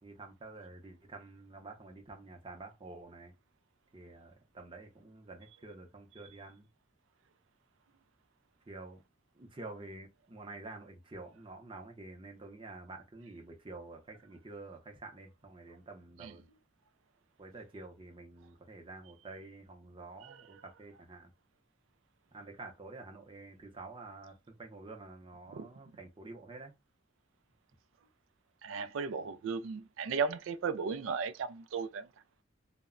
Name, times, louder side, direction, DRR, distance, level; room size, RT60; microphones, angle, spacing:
voice 1, 0.0-3.3 3.9-6.7 8.7-9.0 9.3-16.4 17.4-21.3 22.3-26.7, right 2 dB, 25° right, 0.6 m, -49 dB
voice 2, 28.6-32.1, right 5 dB, 85° right, 0.3 m, -35 dB
2.1 x 2.1 x 3.6 m
head